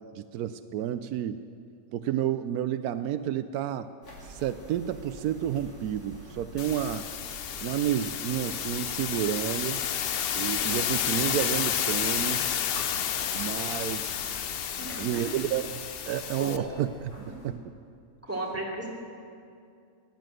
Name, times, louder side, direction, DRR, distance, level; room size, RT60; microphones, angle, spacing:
voice 1, 0.2-1.4 1.9-3.9 4.2-7.1 7.6-9.8 10.3-12.5 13.3-14.3 15.0-17.6, right 11 dB, 85° right, 12 dB, 1.1 m, -31 dB
sound 1, 4.0-17.5, equal, 90° left, 3.3 m, -47 dB
sound 2, 6.6-16.6, left 9 dB, 65° left, 0.6 m, -31 dB
Bowed string instrument, 10.7-16.8, left 1 dB, 30° left, 2.6 m, -51 dB
voice 2, 14.8-15.4 16.4-16.7 18.3-18.9, right 1 dB, 10° right, -3 dB, 2.8 m, -34 dB
17.5 x 10.5 x 7.7 m, 2.4 s
omnidirectional pair, 1.6 m